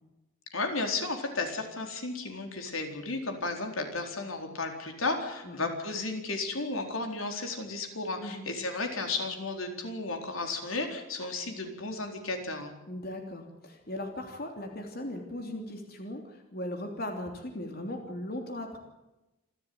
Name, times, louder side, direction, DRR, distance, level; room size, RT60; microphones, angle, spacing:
voice 1, 0.5-12.7, left 3 dB, 85° left, 4 dB, 4.2 m, -33 dB
voice 2, 12.9-18.8, left 1 dB, 50° left, 3 dB, 3.2 m, -38 dB
28.0 x 13.0 x 9.5 m, 0.99 s
head